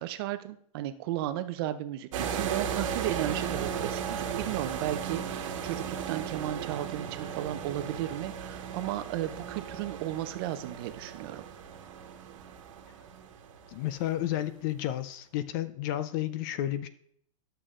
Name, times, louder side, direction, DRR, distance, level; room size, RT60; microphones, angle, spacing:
voice 1, 0.0-11.4, right 13 dB, 45° right, 11 dB, 0.6 m, -34 dB
sound 1, 2.1-14.2, right 7 dB, 65° right, 1.4 m, -36 dB
voice 2, 13.7-16.9, left 13 dB, 35° left, 14 dB, 0.5 m, -31 dB
11.0 x 6.8 x 3.7 m, 0.64 s
supercardioid pair, 165°, 18 cm